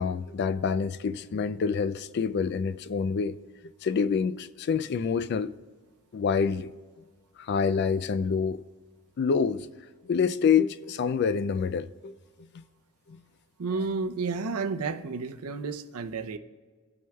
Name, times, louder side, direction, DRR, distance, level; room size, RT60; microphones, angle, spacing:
voice 1, 0.0-3.3 3.8-5.5 6.1-6.7 7.4-8.6 9.2-9.7 10.0-12.1 13.1-13.2, left 6 dB, 50° left, 0.3 m, -27 dB
voice 2, 13.6-16.4, right 4 dB, 80° right, 0.6 m, -31 dB
17.5 x 6.1 x 2.3 m
head